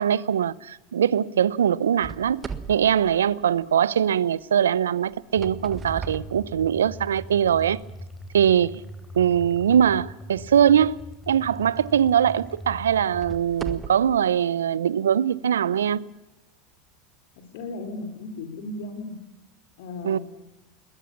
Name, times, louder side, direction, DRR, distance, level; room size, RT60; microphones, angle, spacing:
voice 1, 0.0-2.4 2.7-7.8 8.3-8.8 9.1-11.0 11.3-16.0 20.0-20.2, right 9 dB, 90° right, 0.7 m, -22 dB
sound 1, 2.0-4.0 5.1-7.1 7.7-7.9 8.5-8.6 11.3-11.4 12.0-12.1 12.9-14.2, right 6 dB, 25° right, 1.6 m, -38 dB
sound 2, 5.4-13.4, equal, 5° left, 3.5 m, -41 dB
voice 2, 17.4-19.1 19.8-20.2, left 2 dB, 70° left, 4.9 m, -35 dB
21.5 x 20.5 x 7.2 m
hypercardioid pair, 90°, 0 cm